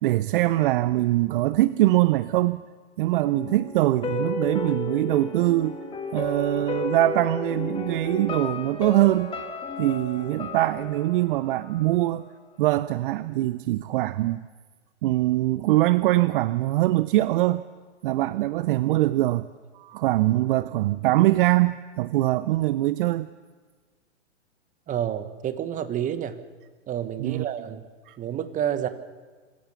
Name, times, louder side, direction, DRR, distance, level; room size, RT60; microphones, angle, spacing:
voice 1, 0.0-2.6 3.0-5.8 6.1-9.3 9.8-12.3 12.6-14.4 15.0-17.6 18.0-19.5 19.7-23.3 27.2-27.5 28.1-28.2, right 16 dB, 50° right, 16 dB, 0.6 m, -23 dB
sound 1, 3.2-12.2 12.5-12.6, left 4 dB, 15° left, 1.8 m, -33 dB
voice 2, 24.9-26.4 26.9-27.9 28.2-28.9, right 10 dB, 20° right, 11 dB, 1.3 m, -29 dB
26.0 x 14.5 x 7.1 m, 1.4 s
hypercardioid pair, 115°, 36 cm